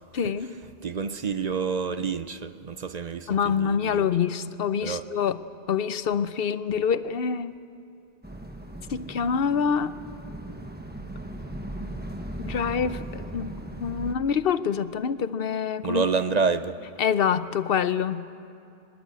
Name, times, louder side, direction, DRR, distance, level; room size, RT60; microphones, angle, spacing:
voice 1, 0.1-0.5 3.3-5.4 5.7-7.6 8.9-9.9 12.4-16.1 16.3-16.4 17.0-18.3, left 7 dB, 65° left, 0.9 m, -26 dB
voice 2, 0.8-4.1 4.8-5.0 15.8-16.8, right 5 dB, 45° right, 0.7 m, -28 dB
sound 1, 8.2-14.1, right 1 dB, 10° right, 1.2 m, -38 dB
23.0 x 20.5 x 8.2 m
omnidirectional pair, 1.1 m